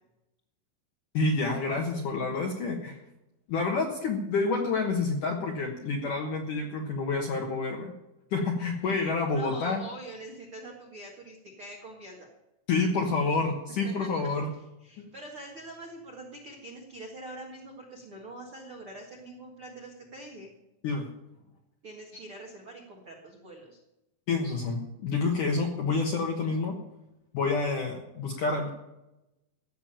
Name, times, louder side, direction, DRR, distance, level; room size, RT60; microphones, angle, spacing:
voice 1, 1.1-3.0 3.5-7.9 8.3-9.8 12.7-14.5 20.8-21.1 24.3-26.7 27.3-28.7, left 3 dB, 65° left, 2 dB, 2.0 m, -28 dB
voice 2, 9.3-12.3 13.8-14.3 14.8-20.5 21.8-23.8, right 1 dB, 65° right, 0 dB, 1.3 m, -44 dB
16.0 x 7.2 x 8.8 m, 0.92 s
omnidirectional pair, 5.6 m